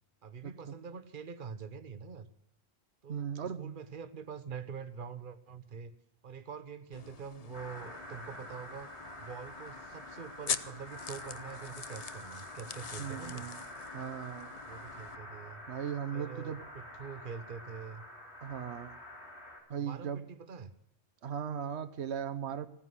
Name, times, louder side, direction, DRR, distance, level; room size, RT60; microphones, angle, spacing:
voice 1, 0.2-2.3 3.0-5.9 6.2-8.9 9.2-13.5 14.7-15.6 16.1-18.0 19.8-20.7, right 6 dB, 55° right, 11 dB, 1.2 m, -45 dB
voice 2, 3.1-3.8 13.0-13.6 13.9-14.5 15.7-16.6 18.4-18.9 19.7-20.2 21.2-22.7, right 8 dB, 90° right, 12 dB, 1.2 m, -37 dB
sound 1, 6.9-15.2, left 6 dB, 40° left, 0.7 m, -44 dB
sound 2, 7.5-19.6, left 1 dB, 85° left, 4.1 m, -47 dB
17.0 x 9.7 x 7.8 m, 0.74 s
omnidirectional pair, 1.1 m